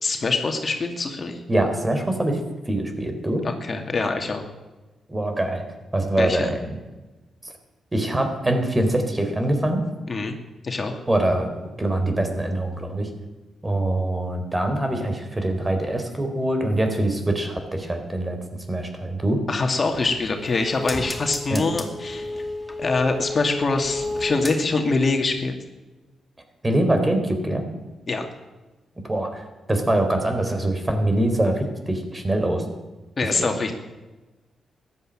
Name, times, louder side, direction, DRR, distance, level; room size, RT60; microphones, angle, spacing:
voice 1, 0.0-1.4 3.4-4.5 6.2-6.5 10.1-10.3 10.6-11.0 19.5-22.4 22.8-25.5 28.1-28.3 33.2-33.7, left 3 dB, 45° left, 4 dB, 2.4 m, -24 dB
voice 2, 1.5-2.4 2.7-3.4 5.1-5.6 5.9-6.7 7.4-7.5 7.9-9.8 11.1-11.5 11.8-13.1 13.6-18.4 18.7-19.4 21.5-21.6 26.6-27.6 29.0-32.6 33.4-33.5, right 1 dB, 25° right, 6 dB, 4.0 m, -23 dB
sound 1, 19.9-25.0 25.4-25.5, left 2 dB, 10° left, 2.5 m, -32 dB
14.5 x 11.0 x 9.0 m, 1.2 s
supercardioid pair, 50°, 0 cm